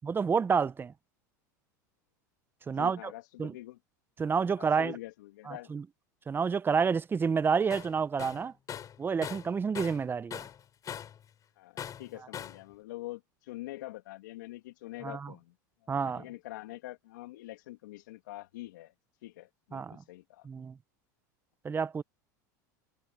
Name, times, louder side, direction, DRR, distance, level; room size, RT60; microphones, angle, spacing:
voice 1, 0.0-0.9 2.7-3.0 3.4-3.5 4.2-5.0 5.5-5.8 6.3-8.5 9.0-10.4 15.0-15.3 15.9-16.2 19.7-20.0 20.4-20.8 21.6-22.0, right 6 dB, 20° right, 1.0 m, -29 dB
voice 2, 2.7-3.8 4.6-5.7 11.5-15.5 15.8-18.9 19.2-20.5, left 17 dB, 75° left, 2.7 m, -45 dB
Tools, 7.7-7.9 8.2-10.1 10.3-11.2 11.8-12.6, left 9 dB, 35° left, 5.1 m, -41 dB
hypercardioid pair, 95°, 10 cm